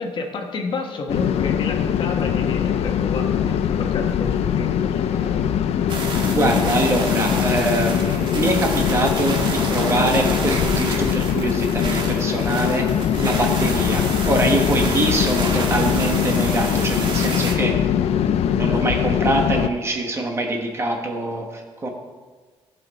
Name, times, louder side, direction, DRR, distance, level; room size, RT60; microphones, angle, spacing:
voice 1, 0.0-5.4 15.1-15.4, left 3 dB, 50° left, 2 dB, 1.2 m, -31 dB
sound 1, 1.1-19.7, left 9 dB, 80° left, 0.5 m, -22 dB
sound 2, 5.9-17.5, right 3 dB, 50° right, 1.4 m, -30 dB
voice 2, 6.2-12.9 13.2-17.8 18.5-21.9, right 2 dB, 25° right, 2 dB, 1.2 m, -24 dB
15.5 x 5.8 x 4.1 m, 1.4 s
wide cardioid pair, 165°, 10 cm